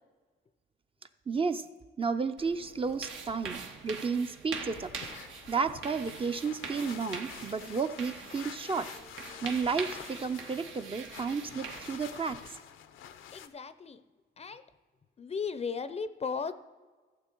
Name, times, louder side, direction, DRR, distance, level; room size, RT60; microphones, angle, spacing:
voice 1, 1.3-1.7 2.0-4.9 5.5-8.9 9.4-12.6, right 5 dB, 25° right, 9 dB, 0.5 m, -32 dB
sound 1, 2.4-12.6, right 5 dB, 80° right, 1.3 m, -43 dB
sound 2, 4.7-13.5, left 9 dB, 80° left, 0.7 m, -48 dB
voice 2, 13.3-14.0 14.4-14.6 15.2-16.5, left 5 dB, 30° left, 13 dB, 0.5 m, -36 dB
15.0 x 7.2 x 4.5 m, 1.4 s
cardioid pair, 90°, 20 cm